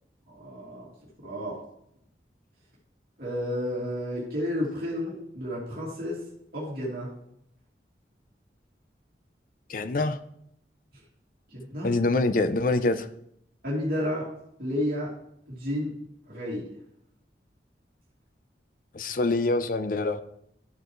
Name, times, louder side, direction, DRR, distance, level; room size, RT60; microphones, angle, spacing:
voice 1, 0.3-0.9 1.2-1.6 3.2-6.2 6.5-7.1 11.5-11.9 13.6-14.3 14.6-15.1 15.5-15.9 16.3-16.7, left 1 dB, 55° right, -7 dB, 2.7 m, -31 dB
voice 2, 9.7-10.2 11.8-13.1 18.9-20.2, left 2 dB, 50° left, 10 dB, 0.5 m, -25 dB
12.5 x 6.8 x 3.2 m, 0.75 s
head